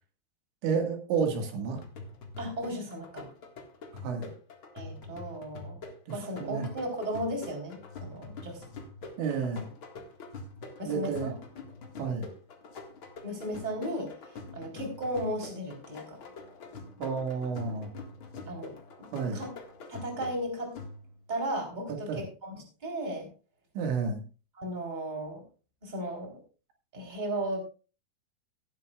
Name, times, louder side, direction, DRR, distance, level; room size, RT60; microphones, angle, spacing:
voice 1, 0.6-1.8 4.0-4.3 6.1-6.7 9.2-9.7 10.8-11.3 12.0-12.3 17.0-17.9 19.1-19.5 22.1-22.2 23.8-24.2, right 5 dB, 85° right, 3 dB, 4.2 m, -31 dB
sound 1, 1.7-21.3, left 3 dB, 50° left, 1.5 m, -45 dB
voice 2, 2.4-3.3 4.7-5.8 6.1-8.6 9.5-9.6 10.8-11.3 13.2-14.1 14.5-16.2 18.5-19.1 19.3-19.5 19.9-20.7 21.3-23.3 24.6-25.4 25.8-26.4 26.9-27.6, right 1 dB, 10° right, 1 dB, 3.3 m, -35 dB
17.0 x 11.5 x 2.4 m, 0.34 s
omnidirectional pair, 5.2 m